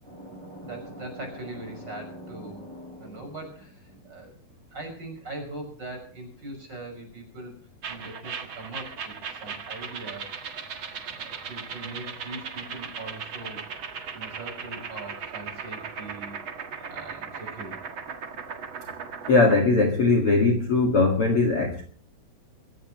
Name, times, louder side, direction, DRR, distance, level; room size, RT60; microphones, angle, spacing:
voice 1, 0.0-4.3 4.7-7.5 7.9-10.3 11.1-13.7 14.1-16.4 16.9-17.9, right 2 dB, 30° right, 4 dB, 6.7 m, -41 dB
sound 1, 7.8-19.6, right 6 dB, 45° right, 1.9 m, -37 dB
voice 2, 19.3-21.8, left 3 dB, 45° left, 2 dB, 2.4 m, -20 dB
23.0 x 16.5 x 3.0 m, 0.43 s
omnidirectional pair, 4.2 m